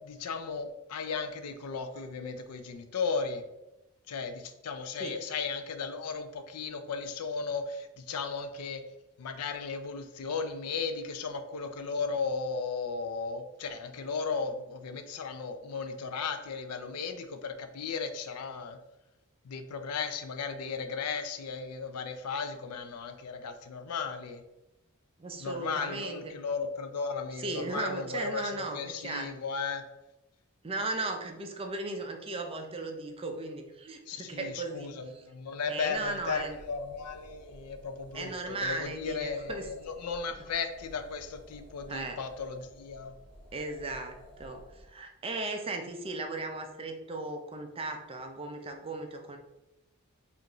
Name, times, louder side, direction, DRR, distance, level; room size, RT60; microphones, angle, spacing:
voice 1, 0.0-3.4 4.1-8.8 9.2-18.8 19.4-24.4 25.4-29.8 34.1-38.3 38.6-43.1, left 5 dB, 85° left, 8 dB, 0.5 m, -35 dB
voice 2, 25.2-26.3 27.4-29.3 30.6-35.2 35.7-36.6 38.1-39.7 40.4-40.5 41.9-42.2 43.5-49.4, right 2 dB, 25° right, 4 dB, 0.5 m, -37 dB
sound 1, 35.7-44.9, equal, 25° left, 1.0 m, -53 dB
4.9 x 2.5 x 3.0 m, 0.95 s
head